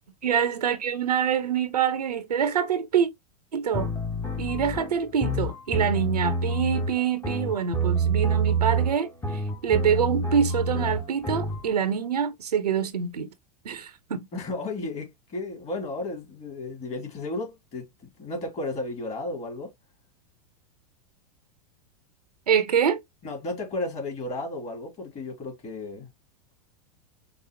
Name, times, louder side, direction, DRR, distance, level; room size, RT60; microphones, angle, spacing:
voice 1, 0.2-3.1 3.5-3.9 4.4-13.3 13.6-14.3 22.5-23.0, right 8 dB, 90° right, 0.8 m, -25 dB
sound 1, 3.7-11.6, right 2 dB, 10° left, 0.8 m, -27 dB
voice 2, 14.3-19.7 23.2-26.1, left 2 dB, 35° left, 2.6 m, -33 dB
5.3 x 2.0 x 2.9 m
hypercardioid pair, 100°, 20 cm